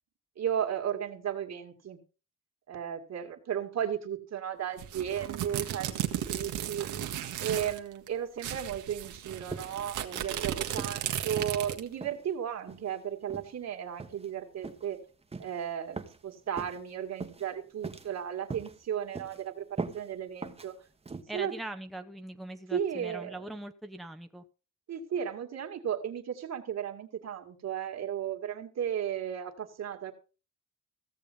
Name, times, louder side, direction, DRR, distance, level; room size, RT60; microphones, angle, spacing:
voice 1, 0.4-2.0 2.7-6.9 7.4-15.0 15.4-20.7 21.3-21.5 22.7-23.4 24.9-30.1, right 9 dB, 60° right, 4 dB, 2.3 m, -35 dB
sound 1, 4.8-7.8 8.1-8.2 8.4-11.9, right 11 dB, 85° right, 1.6 m, -35 dB
sound 2, 9.5-9.9 10.2-10.4 10.8-11.0 11.4-11.6 12.0-12.2 12.7-12.9 13.3-13.5 14.0-14.3 14.6-14.9 15.3-15.5 16.0-16.2 16.6-16.8 17.2-17.5 17.8-18.2 18.5-18.8 19.1-19.4 19.8-20.0 20.4-20.7 21.1-21.2, right 4 dB, 20° right, 1.3 m, -40 dB
voice 2, 21.3-24.4, right 1 dB, ahead, 6 dB, 0.9 m, -41 dB
16.0 x 7.1 x 5.3 m, 0.34 s
cardioid pair, 90°, 30 cm